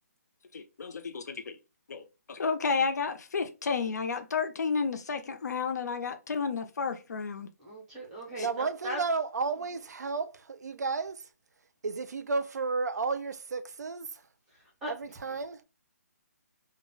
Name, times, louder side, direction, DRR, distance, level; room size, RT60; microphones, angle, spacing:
voice 1, 0.5-1.6 1.9-7.5 8.4-8.5, left 5 dB, 80° left, 0.4 m, -32 dB
voice 2, 7.6-9.0 9.6-9.7 14.5-14.9 15.2-15.4, equal, 5° right, 0.5 m, -39 dB
voice 3, 8.4-11.2 11.8-14.1 14.9-15.6, right 4 dB, 75° right, 0.4 m, -32 dB
2.2 x 2.0 x 3.7 m
hypercardioid pair, 180°, 9 cm